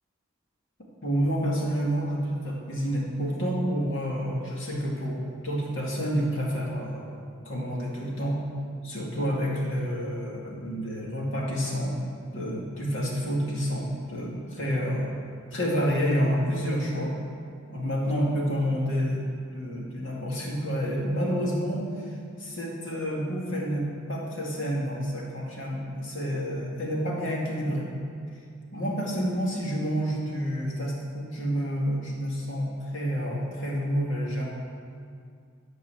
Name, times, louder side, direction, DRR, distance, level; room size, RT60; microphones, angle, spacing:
voice 1, 1.0-8.4 8.8-12.0 12.3-15.1 15.5-17.1 17.7-22.1 22.4-27.9 28.7-34.4, equal, 75° left, -3 dB, 2.3 m, -29 dB
12.0 x 4.7 x 7.7 m, 2.3 s
head